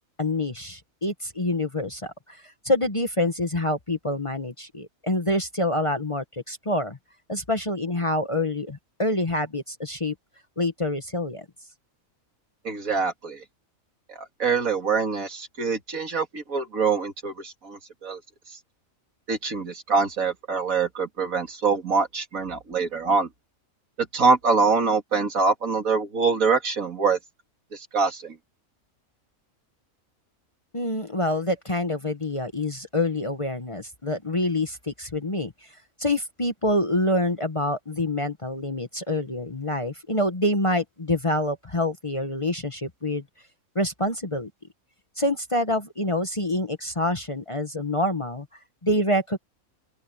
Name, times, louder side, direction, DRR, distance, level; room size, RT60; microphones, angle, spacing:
voice 1, 0.2-7.0 7.3-10.1 10.6-11.4 30.7-35.7 36.0-43.2 43.7-44.5 45.2-48.5 48.8-49.4, left 1 dB, 25° left, 1.2 m, -26 dB
voice 2, 12.6-13.4 14.1-18.2 19.3-23.3 24.0-27.2 27.7-28.3, right 4 dB, 75° right, 2.7 m, -24 dB
open air
omnidirectional pair, 1.5 m